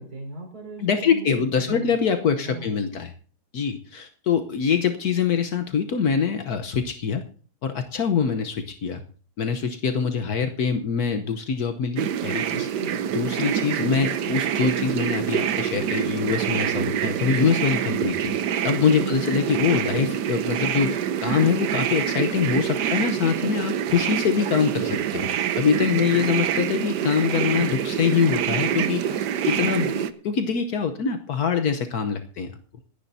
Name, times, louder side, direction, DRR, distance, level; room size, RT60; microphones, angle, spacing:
voice 1, 0.0-2.0 2.4-2.9 12.5-13.0 19.0-19.2 25.9-26.3 29.6-30.0, right 2 dB, 65° right, 2 dB, 4.6 m, -37 dB
voice 2, 0.8-3.1 3.5-7.2 7.6-9.0 9.4-12.7 13.1-18.3 18.6-25.3 25.6-29.9 30.2-32.6, left 6 dB, 70° left, 7 dB, 1.4 m, -24 dB
sound 1, 12.0-30.1, right 9 dB, 90° right, 1.4 m, -26 dB
27.5 x 10.5 x 2.7 m, 0.41 s
omnidirectional pair, 1.7 m